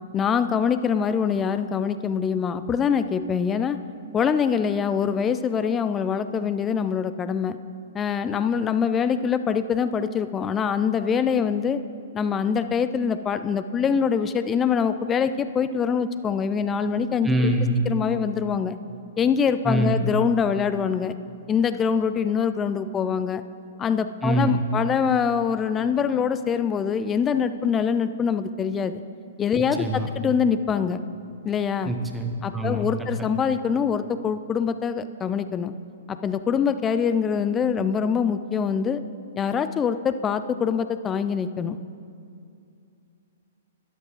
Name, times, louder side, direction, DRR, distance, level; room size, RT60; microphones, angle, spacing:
voice 1, 0.1-3.8 4.1-7.6 7.9-11.8 12.1-17.5 17.9-18.8 19.2-21.2 21.5-23.4 23.8-29.0 29.4-31.0 31.4-31.9 32.4-35.7 36.1-39.0 39.4-41.8, left 7 dB, 20° left, 12 dB, 0.4 m, -24 dB
voice 2, 17.2-17.7 19.6-20.0 24.2-24.7 29.8-30.1 31.8-32.9 33.2-33.3, right 1 dB, 5° right, 3 dB, 1.0 m, -24 dB
12.5 x 11.0 x 3.0 m, 2.5 s
figure-of-eight pair, 115°, 0 cm